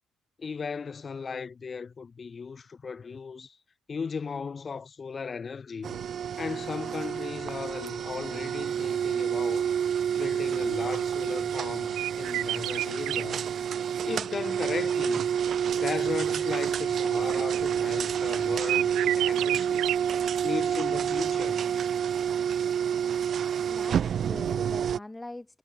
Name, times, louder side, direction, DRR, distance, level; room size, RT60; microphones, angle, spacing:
voice 1, 0.4-3.6 3.9-6.0 6.4-9.7 10.2-13.5 14.1-15.3 15.7-19.8 20.4-21.7, left 5 dB, 40° left, 6.2 m, -36 dB
sound 1, 5.8-25.0, right 8 dB, 60° right, 0.4 m, -28 dB
sound 2, 10.8-13.2 13.9-20.4 20.7-20.8, right 15 dB, 90° right, 4.3 m, -34 dB
voice 2, 23.6-25.6, left 2 dB, 15° left, 2.0 m, -42 dB
cardioid pair, 90°, 0 cm